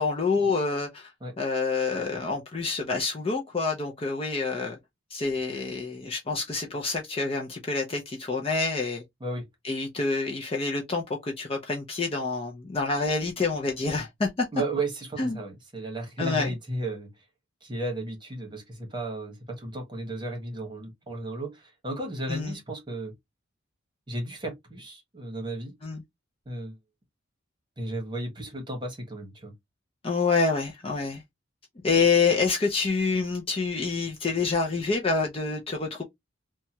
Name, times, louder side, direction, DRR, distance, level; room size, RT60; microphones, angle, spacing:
voice 1, 0.0-1.1 1.4-4.8 5.1-9.0 9.6-14.5 15.2-15.4 16.2-16.5 22.3-22.5 25.8-26.0 30.0-31.2 31.8-36.0, left 4 dB, 30° left, 0.5 m, -27 dB
voice 2, 14.5-17.1 17.6-23.1 24.1-25.7 26.5-26.8 27.8-29.5, right 2 dB, 25° right, 1.1 m, -34 dB
2.9 x 2.2 x 2.7 m
head